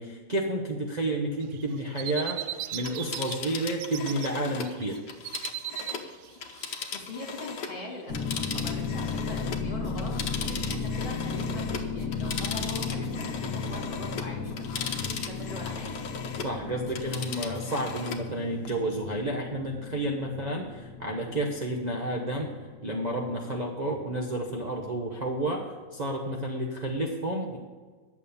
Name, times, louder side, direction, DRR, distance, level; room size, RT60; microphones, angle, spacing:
voice 1, 0.0-2.4 2.7-5.0 16.4-22.5 22.8-27.6, right 1 dB, 45° right, 0 dB, 0.5 m, -31 dB
sound 1, 1.4-3.4 3.7-4.3 4.6-7.6, right 13 dB, 75° right, 1.3 m, -37 dB
Telephone, 2.7-7.8 8.1-16.6 16.9-18.3 18.6-18.7, left 6 dB, 60° left, 1.4 m, -38 dB
voice 2, 6.9-15.9, left 2 dB, 25° left, -2 dB, 2.5 m, -42 dB
sound 2, 8.1-25.3, left 4 dB, 40° left, 1.7 m, -35 dB
11.0 x 7.4 x 7.1 m, 1.4 s
omnidirectional pair, 2.4 m